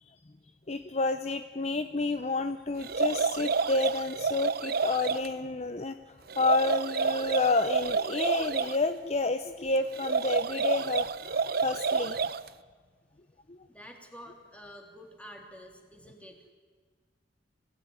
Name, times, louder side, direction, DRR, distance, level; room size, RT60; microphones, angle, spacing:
voice 1, 0.7-6.0 6.4-12.2 13.5-13.6, left 3 dB, 35° left, 10 dB, 0.7 m, -29 dB
sound 1, 2.8-5.3 6.3-8.8 9.9-12.5, right 5 dB, 55° right, 0.7 m, -29 dB
voice 2, 13.7-16.5, equal, 5° left, 2 dB, 3.3 m, -49 dB
27.0 x 16.5 x 9.7 m, 1.5 s
head